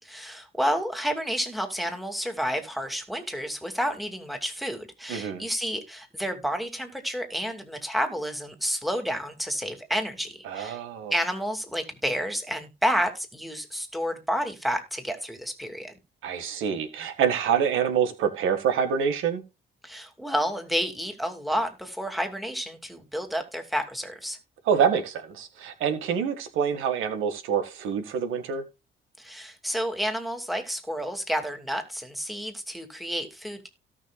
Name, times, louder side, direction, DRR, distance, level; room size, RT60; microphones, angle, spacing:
voice 1, 0.0-10.8 11.1-15.9 19.8-24.4 29.2-33.7, equal, ahead, 2.5 m, -30 dB
voice 2, 5.1-5.4 10.5-11.1 16.2-19.4 24.7-28.6, right 7 dB, 90° right, 1.9 m, -26 dB
17.5 x 5.9 x 2.4 m
cardioid pair, 90°, 20 cm